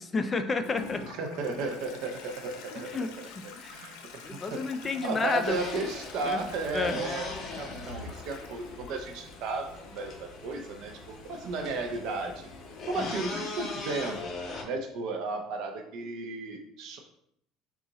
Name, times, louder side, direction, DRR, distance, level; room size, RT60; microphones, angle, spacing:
voice 1, 0.0-1.0 2.9-3.1 3.6-3.8 4.2-5.6 6.2-6.4 6.7-7.0 13.0-13.1, left 4 dB, 25° left, 8 dB, 0.4 m, -30 dB
Toilet flush, 0.6-14.2, left 5 dB, 75° left, 0.5 m, -48 dB
voice 2, 1.0-12.5 12.9-14.3 14.6-17.0, right 3 dB, 65° right, 4 dB, 0.6 m, -34 dB
sound 1, 5.4-14.6, left 3 dB, 40° left, 0.8 m, -41 dB
3.8 x 2.4 x 4.0 m, 0.71 s
cardioid pair, 120°, 0 cm